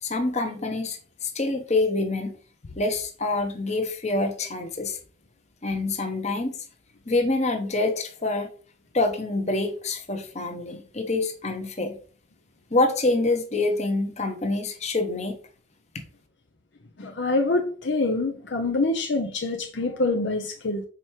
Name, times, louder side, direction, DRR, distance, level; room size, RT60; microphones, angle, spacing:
voice 1, 0.0-2.3 2.8-5.0 5.6-6.5 7.1-8.5 8.9-12.0 12.7-15.4, left 2 dB, 35° left, 1.1 m, -26 dB
voice 2, 17.0-20.8, left 2 dB, 60° left, 0.7 m, -25 dB
5.2 x 4.5 x 4.4 m
head